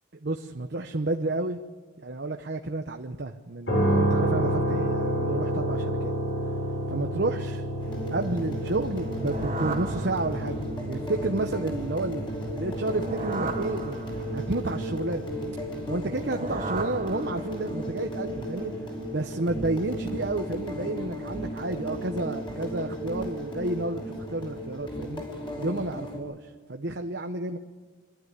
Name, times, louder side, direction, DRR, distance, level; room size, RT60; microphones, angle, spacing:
voice 1, 0.2-1.6 2.0-6.1 6.9-7.6 8.1-12.2 12.5-15.3 15.9-18.7 19.1-25.2 25.6-27.6, right 2 dB, 65° right, 5 dB, 0.9 m, -31 dB
sound 1, 3.7-17.7, right 1 dB, 75° left, 7.9 m, -31 dB
sound 2, 7.8-26.2, equal, 25° left, 4.6 m, -35 dB
sound 3, 8.9-10.8 12.7-14.5 16.0-17.8, right 3 dB, 35° right, 1.4 m, -36 dB
25.0 x 12.5 x 9.6 m, 1.4 s
head